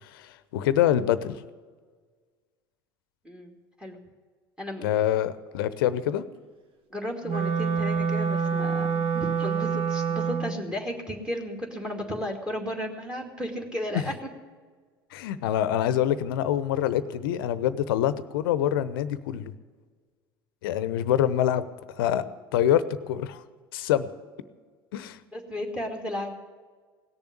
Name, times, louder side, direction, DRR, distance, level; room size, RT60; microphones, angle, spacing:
voice 1, 0.1-1.4 4.8-6.3 15.1-19.5 20.6-21.6 22.0-22.2 22.5-23.4 23.7-24.1 24.9-25.2, left 11 dB, 70° left, 15 dB, 0.8 m, -25 dB
voice 2, 6.9-14.1 25.3-26.3, left 1 dB, 5° right, 3 dB, 2.4 m, -34 dB
Wind instrument woodwind instrument, 7.2-10.6, right 6 dB, 45° right, 1.6 m, -26 dB
17.5 x 7.0 x 9.7 m, 1.5 s
hypercardioid pair, 75°, 12 cm